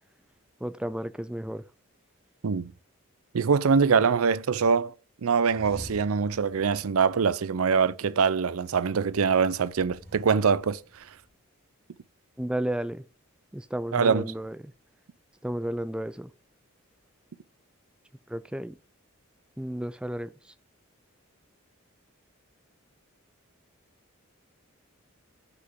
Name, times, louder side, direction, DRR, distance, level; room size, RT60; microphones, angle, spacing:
voice 1, 0.6-1.6 12.4-13.0 13.5-14.7 15.4-16.3 18.3-18.8 19.6-20.5, right 1 dB, 5° right, 0.3 m, -33 dB
voice 2, 3.3-4.9 5.2-10.8 13.9-14.2, right 5 dB, 85° right, 0.5 m, -23 dB
sound 1, 5.5-8.2 9.7-11.4, equal, 50° right, 2.3 m, -48 dB
5.9 x 5.6 x 3.5 m
head